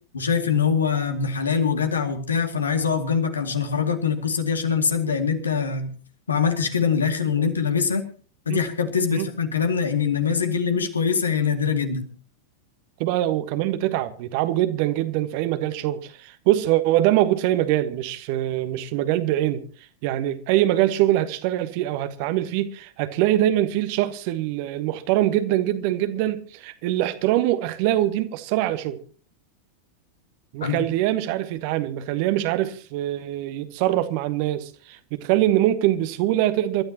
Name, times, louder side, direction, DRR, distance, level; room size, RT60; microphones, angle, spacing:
voice 1, 0.1-5.9 6.3-8.1 8.5-12.1 30.6-30.8, left 6 dB, 70° left, 2.4 m, -23 dB
voice 2, 13.0-19.6 20.0-29.0 30.5-36.8, right 14 dB, 45° right, 1.3 m, -23 dB
27.0 x 13.0 x 2.9 m
figure-of-eight pair, 90°, 0 cm